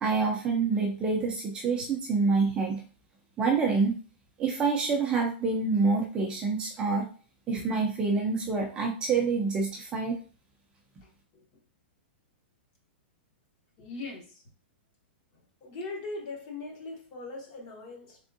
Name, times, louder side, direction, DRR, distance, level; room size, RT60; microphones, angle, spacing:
voice 1, 0.0-2.8 3.4-3.9 4.4-7.1 7.5-10.1, right 4 dB, 15° right, 0.5 m, -27 dB
voice 2, 11.0-11.5 13.8-14.4 15.6-18.2, left 3 dB, 35° left, 1.0 m, -40 dB
3.5 x 3.4 x 2.6 m
supercardioid pair, 160°, 6 cm